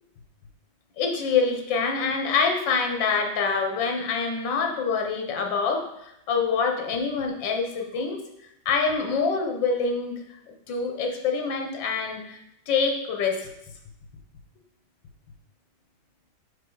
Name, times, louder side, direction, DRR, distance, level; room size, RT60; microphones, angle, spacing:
voice 1, 1.0-8.2 8.6-10.1 10.7-12.4 12.7-13.5, left 5 dB, 80° left, 3 dB, 1.7 m, -25 dB
6.6 x 4.8 x 3.8 m, 0.80 s
omnidirectional pair, 2.0 m